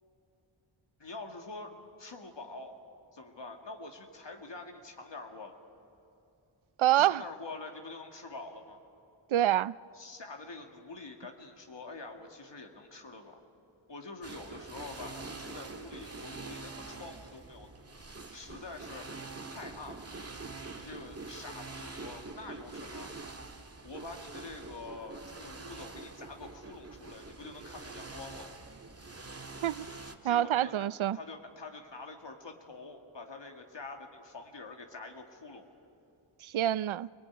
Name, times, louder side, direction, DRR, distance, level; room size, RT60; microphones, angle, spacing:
voice 1, 1.0-1.7 2.0-2.8 3.1-5.6 7.0-8.8 9.9-13.4 13.9-17.7 18.3-19.1 19.5-20.1 20.8-23.2 23.8-28.6 30.1-35.6, left 3 dB, 60° left, 2.1 m, -46 dB
voice 2, 6.8-7.2 9.3-9.8 29.6-29.9 30.2-31.2 36.4-37.1, right 12 dB, 75° right, 0.5 m, -26 dB
sound 1, 14.2-30.1, right 3 dB, 30° right, 1.7 m, -45 dB
24.5 x 19.0 x 9.4 m
wide cardioid pair, 65°, 48 cm